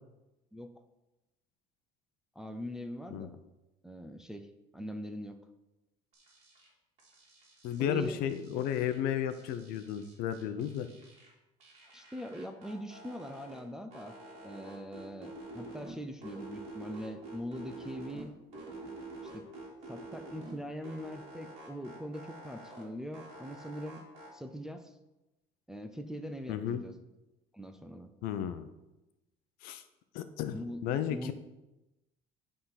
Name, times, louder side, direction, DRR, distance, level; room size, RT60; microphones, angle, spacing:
voice 1, 2.4-3.4 3.8-5.4 7.8-8.2 11.9-14.1 14.4-18.3 19.3-19.5 19.9-24.0 24.3-25.0 25.7-26.9 27.5-28.1 30.4-31.3, equal, 5° right, 5 dB, 0.4 m, -42 dB
sound 1, 6.1-6.7 7.0-9.0 9.3-11.3 11.6-13.6 13.9-15.9 16.2-18.2 18.5-20.5 20.8-22.8 23.1-24.3, right 2 dB, 40° right, 2.7 m, -48 dB
voice 2, 7.6-10.9 26.5-26.8 28.2-28.7 29.6-29.8 30.1-30.6 30.8-31.3, left 9 dB, 65° left, 10 dB, 0.7 m, -33 dB
10.5 x 3.8 x 5.7 m, 0.98 s
cardioid pair, 170°, 16 cm